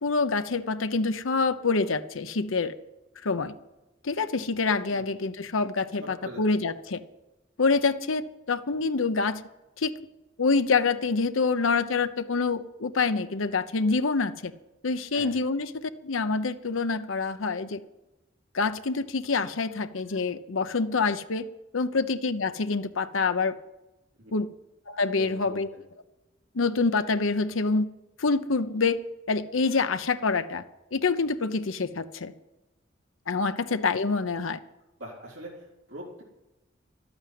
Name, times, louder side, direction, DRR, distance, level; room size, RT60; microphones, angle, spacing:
voice 1, 0.0-2.7 3.2-3.5 4.0-7.0 7.6-9.4 9.8-10.0 10.4-14.5 14.8-17.8 18.5-21.4 21.7-23.6 24.3-24.5 24.9-25.7 26.5-27.9 28.2-29.0 29.3-30.6 30.9-32.3 33.3-34.6, left 4 dB, 90° left, 10 dB, 0.8 m, -26 dB
voice 2, 6.0-6.4 15.1-15.4 24.2-24.3 25.2-25.8 35.0-36.2, equal, 80° right, -5 dB, 4.0 m, -42 dB
12.5 x 8.8 x 9.5 m, 1.0 s
head